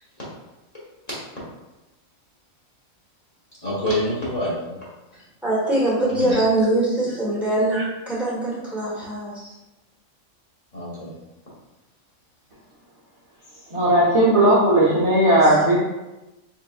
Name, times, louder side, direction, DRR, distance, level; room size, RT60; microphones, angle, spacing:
voice 1, 3.6-4.8 6.1-6.4 7.7-7.8 10.7-11.1 15.4-15.6, left 1 dB, 30° left, -9 dB, 1.1 m, -27 dB
voice 2, 5.4-7.8 8.1-9.5, right 1 dB, ahead, -8 dB, 1.2 m, -22 dB
voice 3, 13.7-15.8, right 1 dB, 30° right, -7 dB, 0.7 m, -16 dB
3.8 x 3.8 x 2.4 m, 1.0 s
omnidirectional pair, 1.4 m